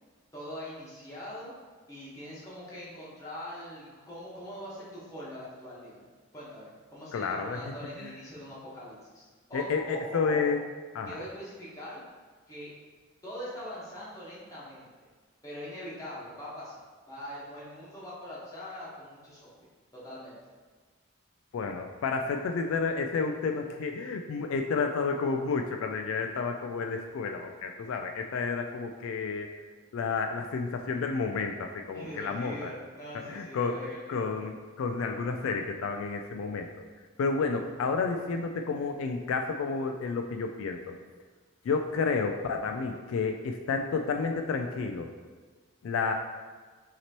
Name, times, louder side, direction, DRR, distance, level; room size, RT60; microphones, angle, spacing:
voice 1, 0.3-1.5 1.9-6.0 6.3-10.5 11.1-12.0 12.5-12.7 13.2-14.9 15.4-16.8 17.1-19.6 19.9-20.4 31.9-34.3, equal, 15° left, -8 dB, 1.2 m, -42 dB
voice 2, 7.1-7.6 8.0-8.1 9.5-10.6 10.9-11.2 21.5-29.5 29.9-32.7 33.3-33.8 34.1-36.7 37.2-41.0 41.6-45.1 45.8-46.1, left 4 dB, 75° left, 4 dB, 0.3 m, -30 dB
5.8 x 2.9 x 3.0 m, 1.4 s
head